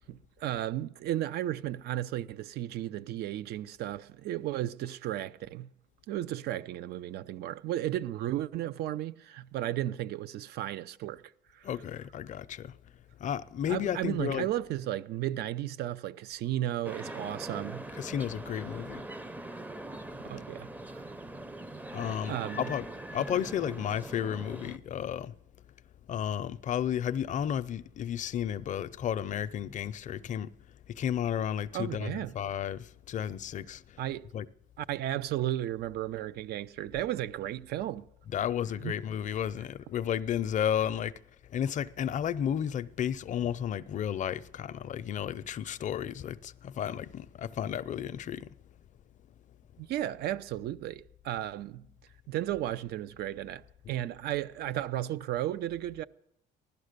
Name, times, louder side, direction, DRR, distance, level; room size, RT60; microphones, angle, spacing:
voice 1, 0.1-5.7 6.1-11.2 11.5-11.7 13.7-17.8 20.2-21.0 22.3-22.7 31.7-32.3 34.0-34.3 34.8-38.1 38.8-39.0 49.8-51.9 52.3-56.0, right 13 dB, 75° right, 0.6 m, -34 dB
voice 2, 11.6-12.7 13.2-14.5 18.0-19.0 21.9-22.8 23.1-25.3 26.1-30.5 30.9-33.8 34.3-34.5 38.3-41.1 41.5-48.5, left 9 dB, 45° left, 0.5 m, -33 dB
sound 1, 16.8-24.8, right 1 dB, 10° right, 0.5 m, -42 dB
16.0 x 12.0 x 6.6 m
cardioid pair, 110°, 17 cm